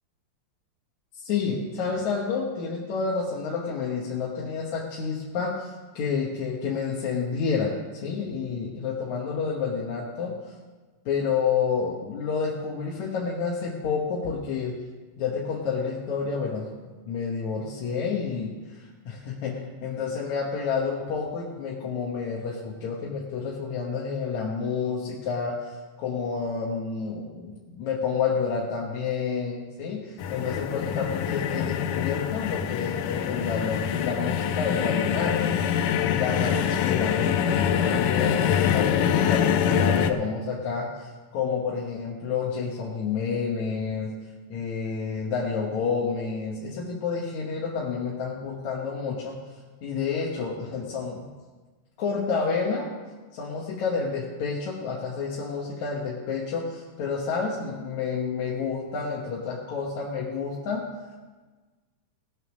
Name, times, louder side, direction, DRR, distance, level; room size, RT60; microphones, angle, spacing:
voice 1, 1.2-7.8 8.0-10.4 11.1-14.8 15.2-16.8 17.1-35.5 36.1-44.2 44.5-49.4 49.8-51.3 52.0-52.9 53.3-60.9, left 5 dB, 60° left, -3 dB, 2.3 m, -29 dB
sound 1, 30.2-40.1, left 9 dB, 80° left, 2.0 m, -25 dB
18.5 x 6.4 x 6.3 m, 1.3 s
omnidirectional pair, 4.1 m